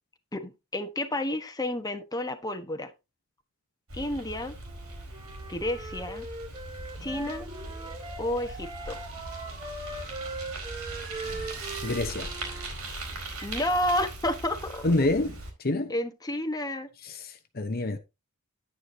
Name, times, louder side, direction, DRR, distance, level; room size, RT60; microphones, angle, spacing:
voice 1, 0.3-2.9 3.9-4.5 5.5-6.3 7.0-7.5 8.2-9.0 13.4-15.1 15.9-16.9, left 1 dB, 15° left, 1.2 m, -31 dB
Bicycle, 3.9-15.5, right 2 dB, 70° right, 4.5 m, -40 dB
Wind instrument woodwind instrument, 4.6-8.2 8.6-12.7, right 2 dB, 20° right, 1.1 m, -41 dB
sound 1, 7.0-12.0, right 3 dB, 40° right, 1.9 m, -46 dB
voice 2, 11.8-12.3 14.8-15.9 17.0-18.0, left 2 dB, 45° left, 0.9 m, -28 dB
9.8 x 9.6 x 2.8 m
head